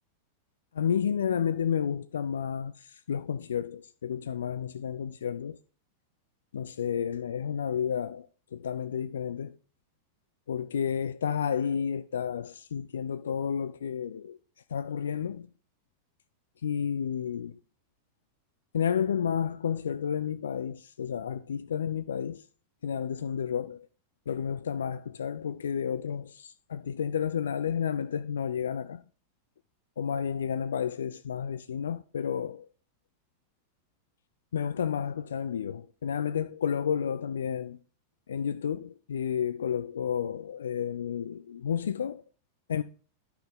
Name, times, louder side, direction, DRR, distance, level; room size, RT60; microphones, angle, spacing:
voice 1, 0.7-5.6 6.5-8.3 8.5-9.5 10.5-14.4 14.7-15.5 16.6-17.6 18.7-22.4 22.8-23.9 24.3-29.0 30.0-32.7 34.5-37.8 38.3-42.2 42.7-42.8, left 8 dB, 65° left, 0.3 m, -31 dB
11.5 x 5.6 x 3.9 m
figure-of-eight pair, 90°, 0 cm